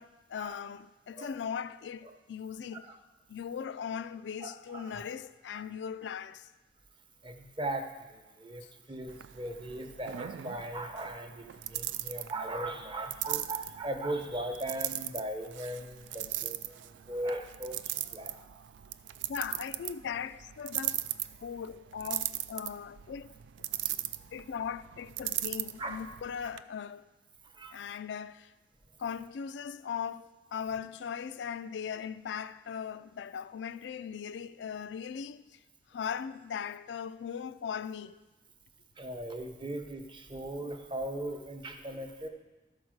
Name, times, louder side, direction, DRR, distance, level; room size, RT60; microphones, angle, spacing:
voice 1, 0.0-2.9 3.3-6.5 8.6-8.7 19.3-21.0 21.4-23.3 24.3-27.1 27.7-28.5 29.0-35.6 35.9-38.2 40.4-40.5, left 7 dB, 75° left, 0.3 m, -39 dB
voice 2, 4.4-5.1 7.2-17.8 18.1-18.4 25.8-26.0 27.4-27.8 39.0-42.3, right 1 dB, 25° right, 0.8 m, -38 dB
sound 1, 9.1-26.6, right 13 dB, 90° right, 0.3 m, -39 dB
12.5 x 4.7 x 6.3 m
head